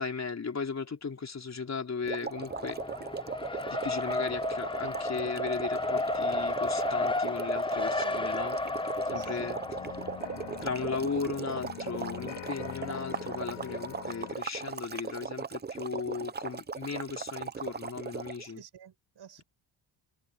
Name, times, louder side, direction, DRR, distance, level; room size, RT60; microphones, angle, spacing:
voice 1, 0.0-2.8 3.6-8.6 9.0-9.6 10.6-18.6, left 5 dB, 35° left, 4.0 m, -36 dB
sound 1, 2.0-18.5, right 5 dB, 20° right, 0.7 m, -38 dB
Race car auto racing, 2.3-11.4, left 2 dB, 10° left, 0.9 m, -33 dB
sound 2, 8.0-8.1 8.5-14.3, left 11 dB, 65° left, 2.2 m, -44 dB
voice 2, 9.2-9.5 18.4-19.4, right 9 dB, 60° right, 7.4 m, -50 dB
cardioid pair, 120°, 48 cm